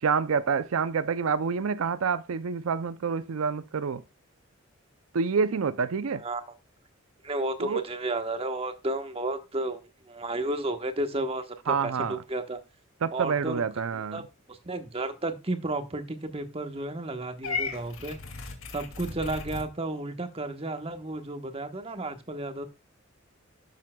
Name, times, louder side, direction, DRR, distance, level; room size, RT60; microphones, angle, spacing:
voice 1, 0.0-4.0 5.1-6.2 7.6-7.8 11.7-12.2 13.0-14.2, right 5 dB, 80° right, 0.5 m, -27 dB
voice 2, 6.1-6.4 7.2-12.6 13.1-13.6 13.9-18.2 18.7-22.6, right 2 dB, 25° right, 1.2 m, -33 dB
Purr / Meow, 17.4-19.7, left 4 dB, 70° left, 2.2 m, -35 dB
12.0 x 7.3 x 2.3 m
head